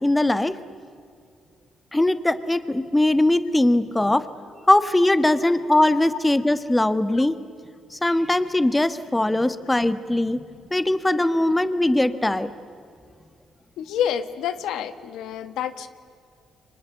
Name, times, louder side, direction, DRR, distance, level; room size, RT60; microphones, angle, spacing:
voice 1, 0.0-0.6 1.9-4.2 4.7-7.3 7.9-10.4 10.7-12.5, left 1 dB, 10° left, 12 dB, 1.4 m, -20 dB
voice 2, 13.8-15.9, left 9 dB, 85° left, 12 dB, 1.3 m, -28 dB
29.0 x 24.5 x 8.3 m, 2.3 s
cardioid pair, 90°, 0 cm